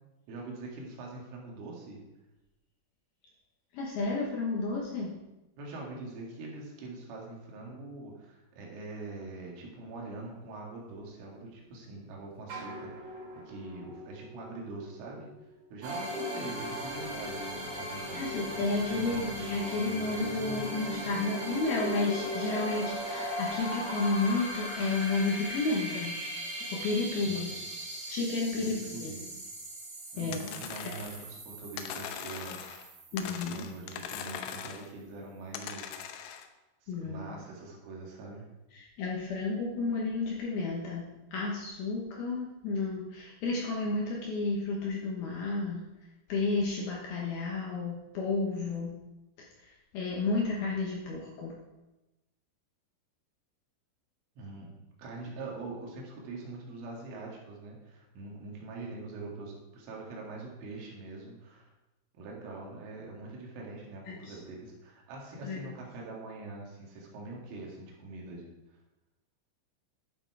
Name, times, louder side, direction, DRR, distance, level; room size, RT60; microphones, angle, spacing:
voice 1, 0.3-2.1 5.6-15.3 15.7-18.7 18.9-19.3 27.2-27.6 28.6-29.3 30.1-32.6 33.2-36.0 36.8-38.5 54.4-61.7 62.1-68.5, right 2 dB, 75° right, -2 dB, 4.5 m, -43 dB
voice 2, 3.7-5.1 18.1-26.1 26.7-27.5 28.1-29.1 30.2-30.4 33.1-33.7 36.9-37.2 38.7-45.8 46.3-49.0 49.9-51.5 64.1-64.4 65.4-65.6, left 3 dB, 65° left, -3 dB, 2.5 m, -31 dB
sound 1, 10.4-10.5 10.9-11.8 12.3-17.6 17.9-18.6 19.2-19.3, right 1 dB, 35° right, 3.5 m, -49 dB
sound 2, 15.8-34.3, equal, 55° right, 4.9 m, -38 dB
sound 3, 30.3-31.3 31.8-32.9 33.2-34.9 35.5-36.5, left 9 dB, 85° left, 2.5 m, -41 dB
11.5 x 7.1 x 4.7 m, 1.0 s
omnidirectional pair, 5.8 m